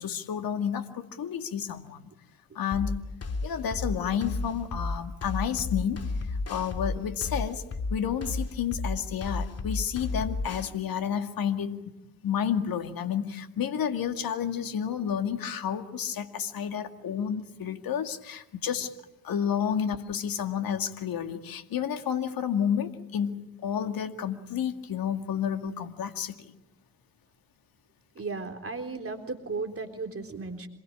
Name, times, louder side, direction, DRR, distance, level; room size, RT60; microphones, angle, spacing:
voice 1, 0.0-2.1 2.5-3.0 3.4-7.6 7.9-11.9 12.2-18.9 19.2-26.4, left 8 dB, 55° left, 7 dB, 2.2 m, -30 dB
sound 1, 2.7-10.7, left 3 dB, 35° left, 2.7 m, -32 dB
voice 2, 28.2-30.7, right 4 dB, 35° right, 5 dB, 3.8 m, -35 dB
27.0 x 22.5 x 8.8 m, 0.91 s
hypercardioid pair, 50°, 40 cm